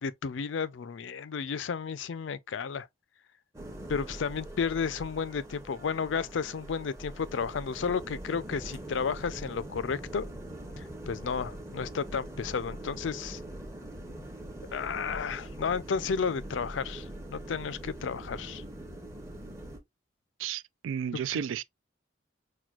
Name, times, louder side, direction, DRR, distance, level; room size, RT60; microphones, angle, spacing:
voice 1, 0.0-2.9 3.9-10.3 10.8-13.4 14.7-18.6, left 6 dB, 80° left, 0.4 m, -32 dB
sound 1, 3.5-19.8, right 1 dB, 15° right, 0.8 m, -43 dB
voice 2, 20.4-21.6, right 8 dB, 90° right, 0.3 m, -33 dB
6.0 x 2.2 x 2.3 m
head